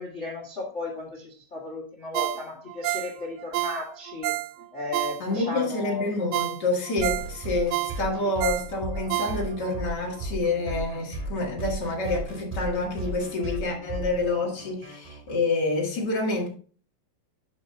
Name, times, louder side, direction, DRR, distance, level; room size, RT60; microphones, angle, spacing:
voice 1, 0.0-4.3 4.7-6.1, left 2 dB, 85° left, 0.6 m, -35 dB
Ringtone, 2.1-5.6 6.0-6.1 6.3-9.8 10.2-10.3, right 18 dB, 85° right, 2.5 m, -30 dB
voice 2, 5.2-16.5, left 3 dB, 40° left, 1.5 m, -28 dB
sound 1, 7.0-15.4, right 2 dB, 20° right, 1.3 m, -35 dB
11.5 x 5.2 x 2.7 m
omnidirectional pair, 4.9 m